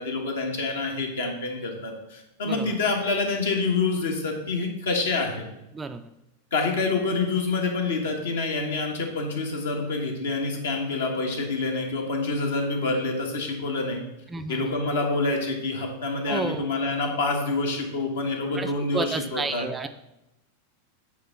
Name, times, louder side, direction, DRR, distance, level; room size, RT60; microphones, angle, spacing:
voice 1, 0.0-5.4 6.5-14.0 14.5-19.7, left 3 dB, 65° left, 1 dB, 1.5 m, -27 dB
voice 2, 2.4-2.8 5.7-6.0 14.3-14.8 16.3-16.7 18.5-19.9, right 3 dB, 15° right, 8 dB, 0.4 m, -31 dB
8.5 x 3.7 x 5.8 m, 0.89 s
figure-of-eight pair, 90°, 0 cm